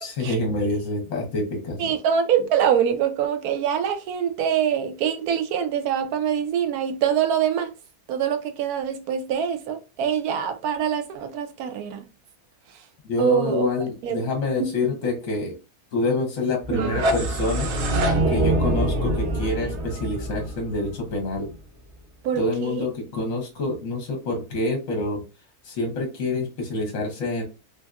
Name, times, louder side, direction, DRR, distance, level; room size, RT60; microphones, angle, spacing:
voice 1, 0.0-1.9 13.0-15.6 15.9-17.7 18.3-21.5 22.3-25.2 25.6-27.4, left 2 dB, 65° left, 1.2 m, -27 dB
voice 2, 1.8-7.7 8.1-12.1 13.2-13.7 14.0-14.2 14.6-14.7 16.7-17.0 18.6-18.7 22.2-22.9, right 8 dB, 80° right, 1.1 m, -24 dB
sound 1, 16.6-21.5, right 1 dB, 60° right, 0.8 m, -24 dB
3.4 x 2.6 x 2.3 m
omnidirectional pair, 1.6 m